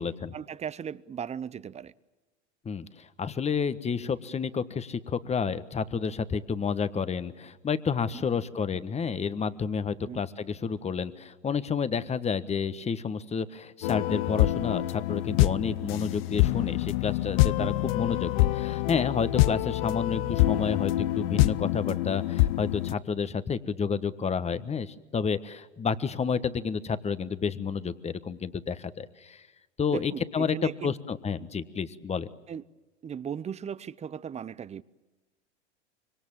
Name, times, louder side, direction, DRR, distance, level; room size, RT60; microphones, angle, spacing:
voice 1, 0.3-1.9 8.1-8.4 10.0-10.2 17.6-17.8 29.8-30.9 32.5-32.6 33.0-34.8, right 8 dB, 20° right, 0.7 m, -37 dB
voice 2, 2.6-29.5 29.8-32.3, left 6 dB, 20° left, 1.4 m, -30 dB
sound 1, 13.8-22.9, left 17 dB, 55° left, 0.7 m, -26 dB
25.5 x 25.5 x 7.4 m
hypercardioid pair, 90°, 35 cm